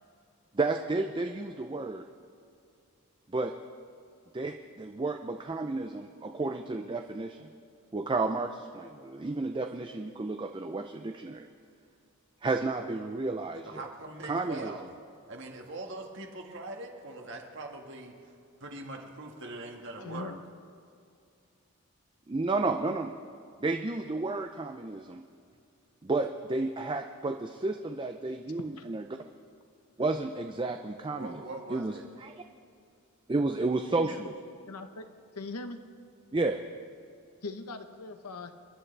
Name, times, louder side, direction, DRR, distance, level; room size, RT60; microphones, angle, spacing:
voice 1, 0.5-2.1 3.3-3.5 4.3-7.5 7.9-11.5 12.4-13.8 14.2-14.7 22.3-23.1 23.6-25.2 26.0-29.0 30.0-31.4 31.7-31.9 32.2-32.3 33.3-34.3 36.3-36.6, right 3 dB, 20° right, 6 dB, 0.4 m, -32 dB
voice 2, 13.6-14.9 15.3-18.3 18.6-20.3 31.1-32.1, right 2 dB, 55° right, 2 dB, 1.7 m, -42 dB
voice 3, 20.0-20.4 28.8-28.9 34.0-34.2 34.7-35.0 35.4-35.8 37.4-38.5, left 3 dB, 90° left, 8 dB, 1.0 m, -40 dB
29.0 x 11.0 x 3.4 m, 2.4 s
head